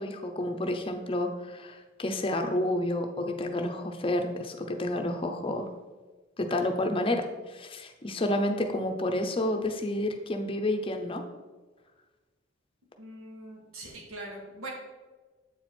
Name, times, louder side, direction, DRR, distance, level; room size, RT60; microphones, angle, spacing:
voice 1, 0.0-5.7 6.4-11.2, left 1 dB, 25° left, 5 dB, 0.6 m, -30 dB
voice 2, 13.0-14.7, right 1 dB, 90° right, -1 dB, 1.7 m, -42 dB
8.2 x 4.4 x 4.3 m, 1.3 s
head